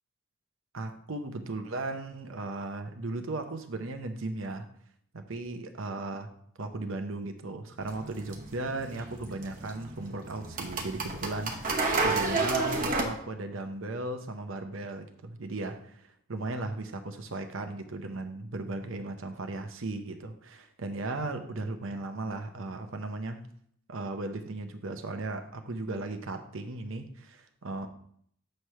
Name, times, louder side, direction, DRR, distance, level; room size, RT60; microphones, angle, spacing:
voice 1, 0.7-4.7 5.1-6.3 6.6-23.4 23.9-27.9, right 2 dB, 70° right, 0.7 m, -36 dB
sound 1, 7.8-13.0, right 3 dB, 40° right, 0.9 m, -31 dB
7.6 x 3.2 x 5.6 m
head